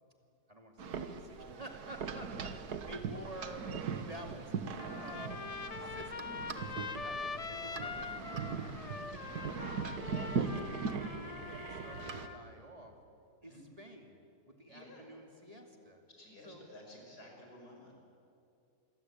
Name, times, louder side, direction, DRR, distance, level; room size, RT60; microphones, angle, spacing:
voice 1, 0.5-3.7 3.9-4.4 4.9-5.5 5.8-6.4 6.7-9.6 10.1-12.9 13.4-14.2 14.5-16.0 16.4-16.6, right 1 dB, 25° right, 3 dB, 2.4 m, -50 dB
sound 1, 0.8-12.3, right 5 dB, 80° right, 1.8 m, -40 dB
voice 2, 4.0-4.4 13.4-13.6 14.7-15.0 16.1-17.9, left 1 dB, 85° left, 0 dB, 6.2 m, -53 dB
Trumpet, 4.8-12.4, left 5 dB, 35° left, 0.6 m, -43 dB
sound 2, 5.5-11.0, right 1 dB, 5° right, 1.9 m, -61 dB
27.0 x 22.5 x 8.6 m, 2.6 s
omnidirectional pair, 1.7 m